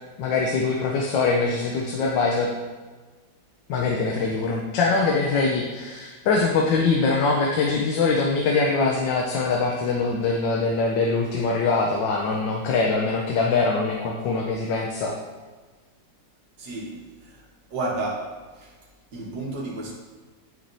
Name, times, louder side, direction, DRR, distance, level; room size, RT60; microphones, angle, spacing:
voice 1, 0.2-2.5 3.7-15.1, left 4 dB, 80° left, 0 dB, 1.4 m, -23 dB
voice 2, 16.6-17.4 17.7-18.8 19.1-19.9, right 2 dB, 65° right, -5 dB, 2.0 m, -32 dB
8.4 x 7.3 x 2.7 m, 1.4 s
omnidirectional pair, 2.0 m